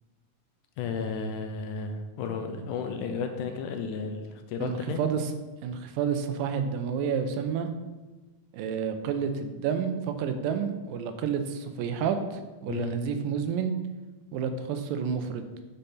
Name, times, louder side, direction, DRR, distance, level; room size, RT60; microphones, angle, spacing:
voice 1, 0.8-5.0 12.7-12.9, left 5 dB, 75° left, 6 dB, 2.1 m, -33 dB
voice 2, 4.6-5.3 5.6-7.7 8.5-13.8 14.3-15.4, right 7 dB, 85° right, 8 dB, 2.4 m, -30 dB
10.0 x 5.6 x 4.2 m, 1.2 s
omnidirectional pair, 3.9 m